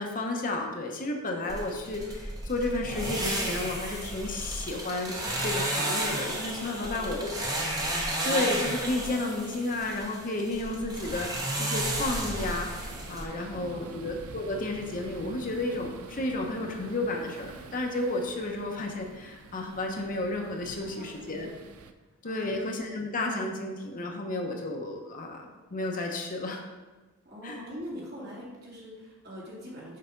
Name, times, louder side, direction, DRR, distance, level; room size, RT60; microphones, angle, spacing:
voice 1, 0.0-7.3 8.0-21.5 22.2-26.6 27.4-27.6, left 2 dB, 40° left, 2 dB, 0.8 m, -32 dB
sound 1, 1.5-13.2, right 1 dB, 15° right, 0.9 m, -33 dB
voice 2, 6.6-7.4 7.8-7.9 13.4-14.0 20.8-21.5 22.2-22.6 27.2-30.0, equal, 50° right, -5 dB, 2.4 m, -44 dB
sound 2, 12.1-21.9, right 3 dB, 85° right, 0.5 m, -47 dB
6.6 x 4.7 x 5.2 m, 1.2 s
head